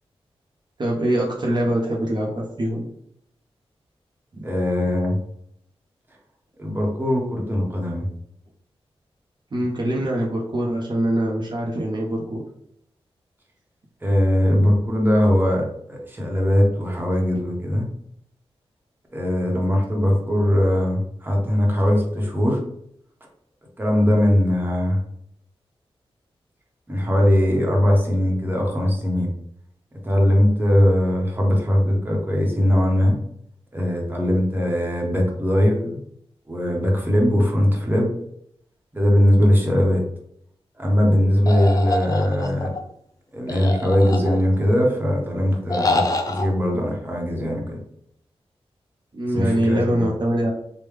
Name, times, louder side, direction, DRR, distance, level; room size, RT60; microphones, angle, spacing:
voice 1, 0.8-2.9 4.3-4.5 9.5-12.4 49.1-50.5, right 1 dB, 45° right, -3 dB, 0.7 m, -23 dB
voice 2, 4.4-5.2 6.6-8.1 14.0-17.9 19.1-22.6 23.8-25.0 26.9-29.3 30.0-33.1 33.7-36.0 36.5-38.1 38.9-40.0 40.8-42.7 43.3-47.8 49.3-50.1, left 1 dB, 20° right, -1 dB, 0.9 m, -20 dB
sound 1, 41.5-42.8 43.5-44.6 45.7-46.5, left 2 dB, 35° left, 0.5 m, -25 dB
3.4 x 2.2 x 3.2 m, 0.71 s
cardioid pair, 70°, 10 cm